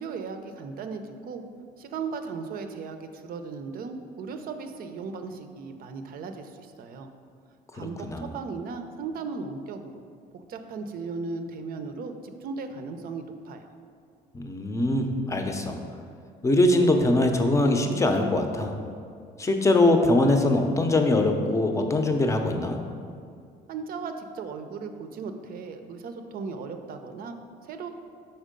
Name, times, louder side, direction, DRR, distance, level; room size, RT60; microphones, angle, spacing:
voice 1, 0.0-1.4 1.8-7.1 7.7-10.0 10.3-13.7 23.7-27.9, right 4 dB, 60° right, 7 dB, 0.6 m, -37 dB
voice 2, 7.7-8.3 14.3-15.8 16.4-18.7 19.4-22.8, left 2 dB, 20° left, 5 dB, 0.6 m, -22 dB
5.4 x 4.5 x 5.1 m, 2.3 s
cardioid pair, 110°, 17 cm